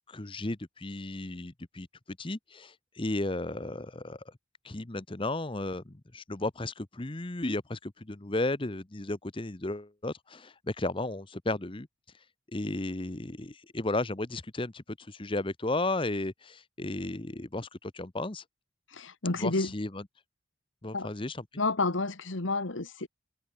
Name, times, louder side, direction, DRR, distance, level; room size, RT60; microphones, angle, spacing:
voice 1, 0.1-1.9 2.2-4.3 4.6-11.9 12.5-18.4 19.4-20.0 20.8-21.4, left 2 dB, 25° left, 0.9 m, -34 dB
voice 2, 18.9-19.7 20.9-21.1 21.6-23.1, left 3 dB, 70° left, 1.8 m, -30 dB
head